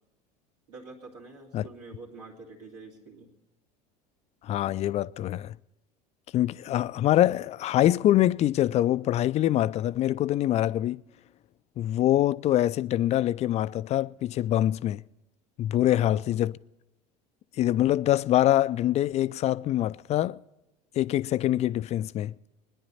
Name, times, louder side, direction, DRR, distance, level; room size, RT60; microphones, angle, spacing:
voice 1, 0.7-3.3 15.8-16.4, right 3 dB, 75° right, 2.8 m, -47 dB
voice 2, 4.4-5.6 6.3-11.0 11.8-15.0 15.6-16.5 17.6-20.4 21.0-22.3, left 13 dB, 30° left, 0.4 m, -24 dB
21.5 x 10.5 x 4.1 m
figure-of-eight pair, 70°, 21 cm